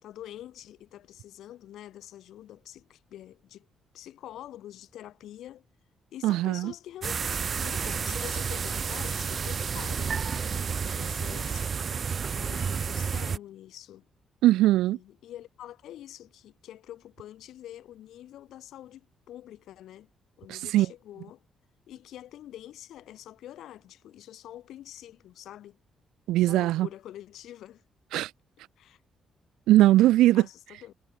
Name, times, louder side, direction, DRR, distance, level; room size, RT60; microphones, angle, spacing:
voice 1, 0.0-3.7 3.9-5.6 6.1-11.8 12.3-14.1 14.9-20.1 20.4-21.4 21.9-25.8 26.5-27.8 28.8-29.0 30.3-30.9, left 12 dB, 80° left, 5.9 m, -46 dB
voice 2, 6.2-6.7 14.4-15.0 20.5-20.9 26.3-26.9 28.1-28.3 29.7-30.5, right 15 dB, 90° right, 1.2 m, -20 dB
sound 1, 7.0-13.4, right 6 dB, 45° right, 1.8 m, -30 dB
cardioid pair, 90°, 0 cm